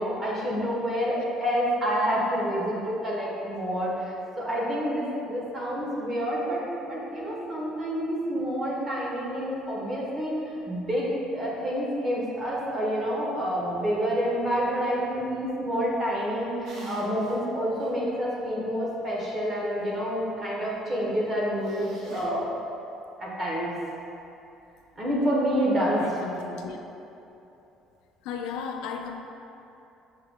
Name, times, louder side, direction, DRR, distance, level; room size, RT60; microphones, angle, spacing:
voice 1, 0.0-10.3 10.7-22.5 23.2-23.7 25.0-26.2, equal, 25° right, -5 dB, 1.0 m, -28 dB
sound 1, 16.6-17.4 17.8-17.9 21.6-22.2, right 1 dB, 65° right, 0.9 m, -41 dB
voice 2, 26.0-26.8 28.2-29.2, left 6 dB, 85° left, 3 dB, 0.4 m, -35 dB
6.5 x 2.2 x 3.6 m, 2.9 s
cardioid pair, 140°, 0 cm